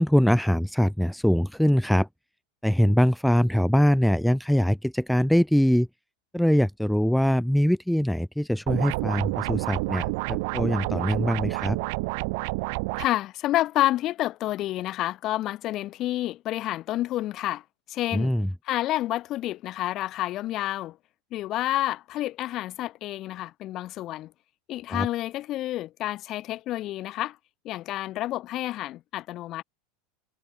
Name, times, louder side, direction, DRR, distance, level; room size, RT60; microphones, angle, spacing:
voice 1, 0.0-2.1 2.6-5.9 6.3-11.8 18.1-18.5 24.9-25.1, equal, ahead, 0.6 m, -22 dB
sound 1, 8.7-13.1, right 28 dB, 65° right, 1.9 m, -29 dB
voice 2, 13.0-17.6 17.9-18.3 18.7-21.0 21.3-24.3 24.7-27.4 27.6-29.6, left 15 dB, 45° left, 3.9 m, -29 dB
supercardioid pair, 125°, 0 cm